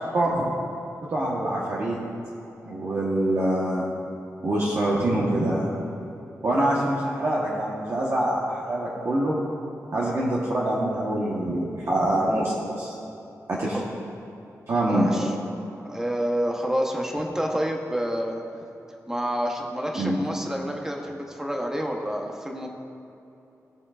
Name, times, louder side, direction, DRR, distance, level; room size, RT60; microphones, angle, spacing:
voice 1, 0.1-0.5 1.1-2.0 2.7-3.9 4.4-5.7 6.4-9.4 9.9-12.9 13.5-13.8 14.7-15.1 19.9-20.2, right 1 dB, 45° right, -6 dB, 1.2 m, -25 dB
voice 2, 14.9-15.3 15.9-18.4 19.1-22.7, equal, 10° right, 1 dB, 0.9 m, -28 dB
18.0 x 7.1 x 2.5 m, 2.9 s
wide cardioid pair, 165°, 6 cm